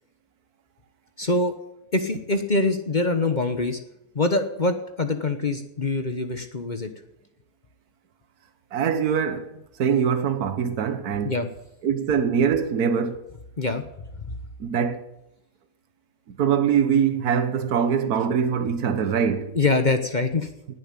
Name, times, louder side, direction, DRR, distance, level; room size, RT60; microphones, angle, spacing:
voice 1, 1.2-1.5 1.9-3.8 4.1-6.9 11.2-11.5 13.6-13.8 14.3-14.4 19.5-20.5, left 2 dB, 35° left, 1.1 m, -24 dB
voice 2, 8.7-11.4 11.8-13.2 14.6-15.0 16.3-19.6, right 7 dB, 80° right, 1.5 m, -23 dB
19.0 x 7.3 x 9.0 m
omnidirectional pair, 1.6 m